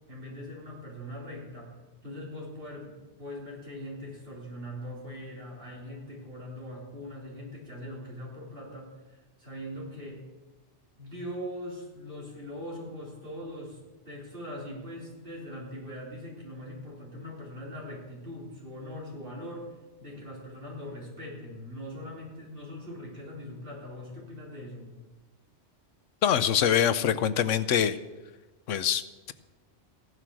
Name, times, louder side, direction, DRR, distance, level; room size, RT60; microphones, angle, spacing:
voice 1, 0.1-10.2 11.0-13.8 14.1-19.7 20.0-24.9, left 1 dB, 45° right, -4 dB, 4.3 m, -41 dB
voice 2, 26.2-28.0 28.7-29.0, left 9 dB, 85° left, 14 dB, 1.1 m, -24 dB
15.5 x 11.0 x 6.3 m, 1.2 s
omnidirectional pair, 1.3 m